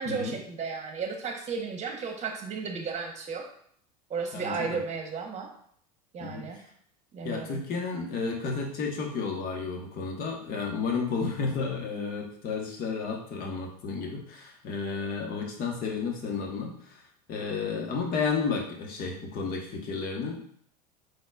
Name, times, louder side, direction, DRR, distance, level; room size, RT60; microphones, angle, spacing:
voice 1, 0.0-3.5 4.1-5.5 6.1-6.6 7.1-7.6, right 5 dB, 35° right, 3 dB, 1.0 m, -34 dB
voice 2, 4.3-4.8 6.2-6.5 7.2-17.0 17.3-20.4, left 5 dB, 45° left, 1 dB, 1.2 m, -32 dB
4.8 x 4.2 x 2.4 m, 0.62 s
hypercardioid pair, 85°, 21 cm